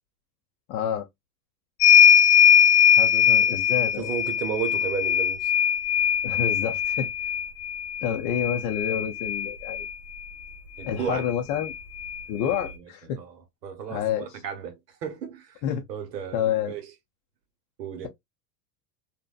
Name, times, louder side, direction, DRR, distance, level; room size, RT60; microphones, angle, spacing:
voice 1, 0.7-1.1 3.0-4.1 6.2-7.1 8.0-9.9 10.8-11.7 12.3-13.2 13.9-14.3 15.6-15.8 16.3-16.8, left 9 dB, 40° left, 0.5 m, -28 dB
sound 1, 1.8-9.9 11.2-11.3 11.6-12.7, left 8 dB, 75° left, 0.9 m, -21 dB
voice 2, 4.0-5.5 10.8-11.3 12.4-12.9 13.2-13.4 13.6-15.6 15.9-16.9 17.8-18.1, right 7 dB, 85° right, 1.0 m, -34 dB
2.6 x 2.2 x 2.3 m
hypercardioid pair, 105°, 48 cm